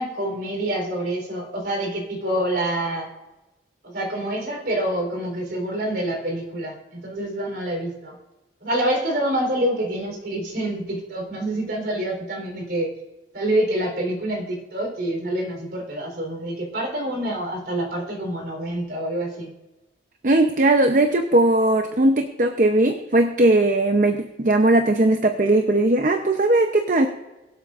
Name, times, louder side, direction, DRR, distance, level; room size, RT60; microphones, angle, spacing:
voice 1, 0.0-3.1 3.8-8.2 8.6-12.9 13.3-19.5, right 1 dB, 60° right, 2 dB, 3.8 m, -26 dB
voice 2, 20.2-27.1, right 2 dB, 45° right, 5 dB, 0.7 m, -18 dB
23.0 x 8.1 x 2.5 m, 1.1 s
head